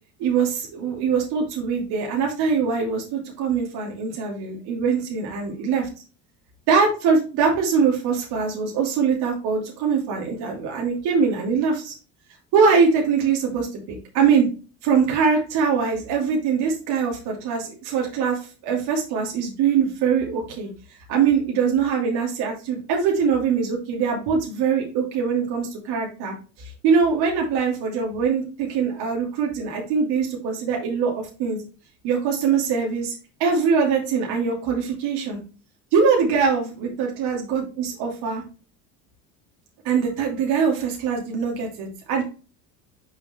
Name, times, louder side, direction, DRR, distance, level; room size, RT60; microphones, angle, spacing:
voice 1, 0.2-5.9 6.7-11.9 12.5-14.5 14.8-18.4 18.6-20.7 21.1-26.3 26.8-31.6 32.0-33.1 33.4-35.4 35.9-38.4 39.8-42.2, right 6 dB, 65° right, -1 dB, 2.6 m, -22 dB
5.8 x 5.3 x 3.2 m, 0.35 s
supercardioid pair, 85°, 41 cm